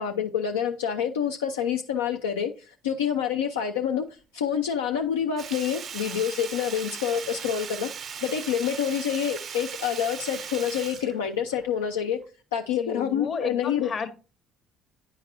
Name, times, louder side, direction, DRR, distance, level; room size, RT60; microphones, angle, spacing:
voice 1, 0.0-4.0 4.3-7.9 8.2-12.2 12.5-13.9, left 8 dB, 90° left, 3 dB, 0.4 m, -27 dB
Sink (filling or washing), 5.4-11.9 12.2-12.3, right 7 dB, 55° right, 0.5 m, -38 dB
voice 2, 12.8-14.1, left 5 dB, 45° left, 8 dB, 1.0 m, -32 dB
9.4 x 4.0 x 2.6 m, 0.35 s
hypercardioid pair, 55°, 0 cm